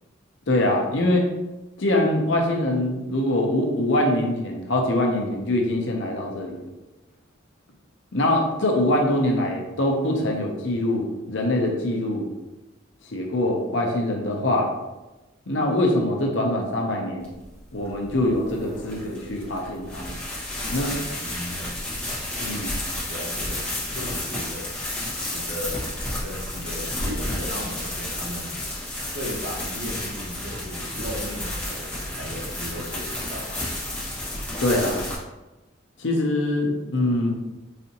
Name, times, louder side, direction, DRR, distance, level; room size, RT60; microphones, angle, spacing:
voice 1, 0.5-1.3 1.8-6.6 8.1-12.3 13.1-14.7 15.5-17.3 17.7-20.2 20.7-21.0 22.4-22.8 34.6-35.1 36.0-37.3, left 1 dB, 70° left, 1 dB, 0.7 m, -23 dB
sound 1, 17.2-35.2, left 1 dB, 5° left, 1.0 m, -31 dB
voice 2, 21.2-21.6 23.1-24.7 25.3-28.6 29.1-33.7, equal, 85° right, -2 dB, 1.1 m, -36 dB
4.1 x 2.6 x 2.8 m, 1.1 s
head